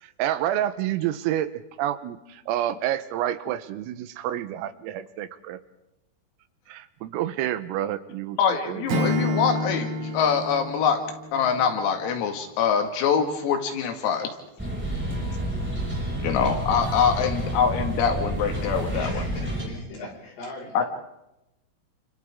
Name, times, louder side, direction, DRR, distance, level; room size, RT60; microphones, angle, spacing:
voice 1, 0.0-5.6 6.7-8.9, right 12 dB, 85° right, 11 dB, 3.7 m, -29 dB
voice 2, 8.4-11.0 11.3-14.3 16.2-19.2 20.7-20.8, left 7 dB, 85° left, 4 dB, 4.8 m, -24 dB
Acoustic guitar / Strum, 8.9-12.0, left 1 dB, 50° right, 3.7 m, -29 dB
sound 1, 14.6-19.7, right 1 dB, ahead, 5.9 m, -29 dB
voice 3, 18.9-20.8, left 2 dB, 50° left, -1 dB, 7.4 m, -39 dB
29.5 x 27.0 x 3.7 m, 0.91 s
omnidirectional pair, 6.0 m